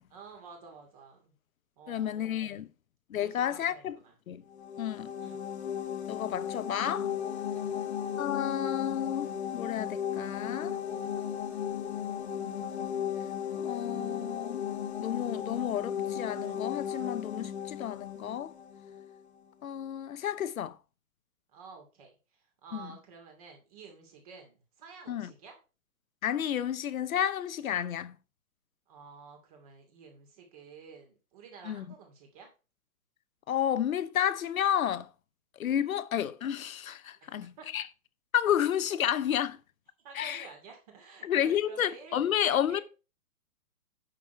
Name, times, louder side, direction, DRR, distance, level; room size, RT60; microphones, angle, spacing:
voice 1, 0.1-1.3 1.8-2.6 3.1-4.1 5.2-5.4 7.5-8.0 21.5-25.6 28.9-32.5 37.2-37.7 38.9-39.0 40.0-42.4 42.7-42.8, right 5 dB, 25° right, 2.5 m, -51 dB
voice 2, 1.9-2.7 3.1-3.9 4.3-4.4 4.8-5.1 6.1-7.1 8.2-10.8 13.6-14.6 15.0-18.5 19.6-20.8 22.7-22.9 25.1-25.3 26.2-28.2 31.6-31.8 33.5-35.1 35.6-37.9 38.3-39.6 40.1-40.5 41.2-42.8, left 10 dB, 65° left, 0.9 m, -31 dB
sound 1, 4.5-19.2, left 9 dB, 45° left, 1.2 m, -36 dB
9.2 x 6.3 x 4.6 m
hypercardioid pair, 175°, 44 cm